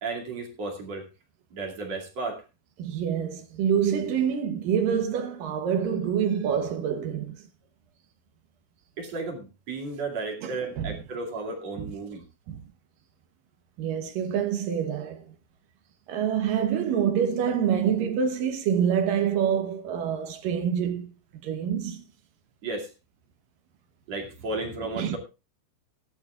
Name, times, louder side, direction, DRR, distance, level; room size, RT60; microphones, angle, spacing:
voice 1, 0.0-1.1 1.5-2.4 9.0-12.2 22.6-22.9 24.1-25.2, right 3 dB, 40° right, 3.0 m, -33 dB
voice 2, 2.8-7.4 10.4-10.9 11.8-11.9 12.5-12.6 13.8-15.3 16.1-21.1 21.4-22.0 25.0-25.2, right 8 dB, 70° right, 2.1 m, -26 dB
17.5 x 12.0 x 2.4 m
omnidirectional pair, 5.3 m